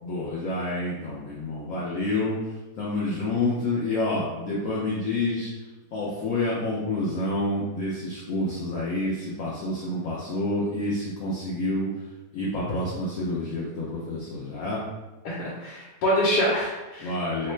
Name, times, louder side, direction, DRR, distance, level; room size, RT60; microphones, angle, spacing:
voice 1, 0.0-5.5 5.9-11.9 12.3-14.8 17.0-17.5, left 2 dB, 65° left, -6 dB, 0.9 m, -28 dB
voice 2, 15.2-17.1 17.4-17.5, equal, 90° left, -5 dB, 1.2 m, -25 dB
3.1 x 2.0 x 3.1 m, 1.1 s
omnidirectional pair, 1.7 m